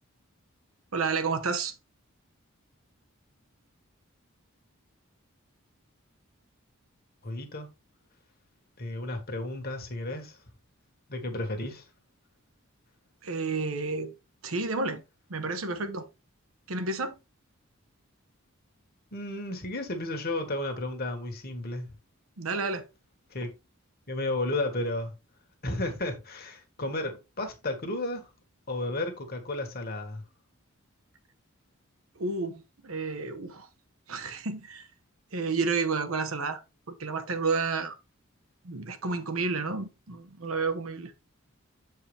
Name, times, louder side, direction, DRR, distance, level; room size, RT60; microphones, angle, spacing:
voice 1, 0.9-1.7 13.2-14.1 14.4-15.0 15.3-16.1 16.7-17.2 22.4-22.8 32.2-33.7 34.1-34.9 35.3-36.6 36.9-38.0 38.6-41.1, right 4 dB, 75° right, 1.0 m, -31 dB
voice 2, 7.2-7.7 8.8-10.4 11.1-11.8 19.1-21.9 23.3-23.5 24.1-25.1 25.6-28.3 28.7-30.2, left 2 dB, 45° left, 1.6 m, -33 dB
7.3 x 4.7 x 3.4 m
head